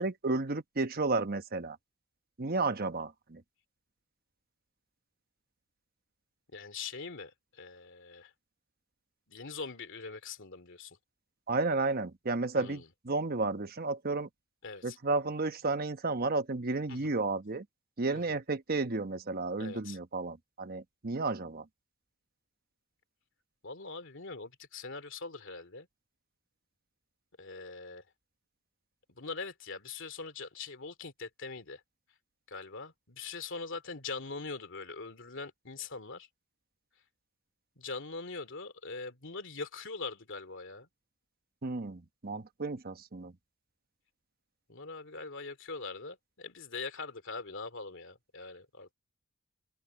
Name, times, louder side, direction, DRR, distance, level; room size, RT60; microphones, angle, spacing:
voice 1, 0.0-1.8 2.4-3.4 11.5-14.3 14.8-17.6 18.0-21.6 41.6-43.3, right 3 dB, 45° right, 1.1 m, -32 dB
voice 2, 6.5-7.3 7.6-8.3 9.3-11.0 12.5-12.8 14.6-15.0 16.9-17.1 18.1-18.2 19.6-20.0 23.6-25.9 27.4-28.0 29.2-31.8 32.5-36.3 37.8-40.9 44.7-48.9, left 4 dB, 60° left, 2.8 m, -42 dB
head